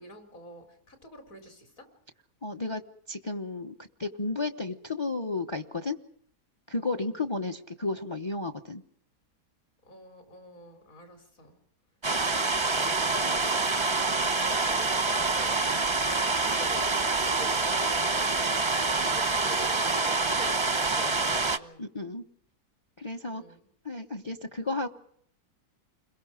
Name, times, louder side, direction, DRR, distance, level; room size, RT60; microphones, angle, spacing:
voice 1, 0.0-1.9 6.9-7.2 9.8-11.6 13.8-15.6 16.0-18.8 19.1-21.9 23.2-23.7, equal, 55° left, 5 dB, 4.7 m, -47 dB
voice 2, 2.4-2.8 3.1-6.0 6.7-8.8 21.8-22.2 23.0-23.4 23.8-24.9, left 3 dB, 20° left, 9 dB, 0.8 m, -33 dB
sound 1, 12.0-21.6, right 3 dB, 25° right, 0.8 m, -26 dB
29.5 x 22.0 x 5.0 m, 0.67 s
omnidirectional pair, 1.8 m